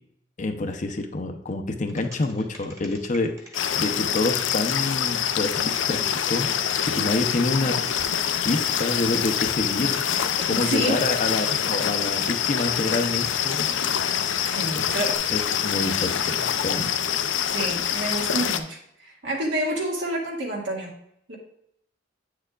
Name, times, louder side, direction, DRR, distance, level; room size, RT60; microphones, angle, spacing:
voice 1, 0.4-3.3 3.7-7.7 8.4-10.0 10.5-13.7 14.8-14.9 15.3-16.9, left 2 dB, 40° left, 6 dB, 0.6 m, -27 dB
sound 1, 1.9-7.0 7.4-8.0 8.3-10.0 10.3-14.4 15.0-15.2, right 1 dB, 15° right, 1.4 m, -45 dB
sound 2, 3.5-18.6, left 9 dB, 85° left, 0.5 m, -25 dB
voice 2, 10.5-11.0 14.4-15.3 17.5-20.9 21.3-21.4, right 1 dB, 75° right, -1 dB, 1.9 m, -29 dB
8.6 x 6.7 x 2.4 m, 0.74 s
head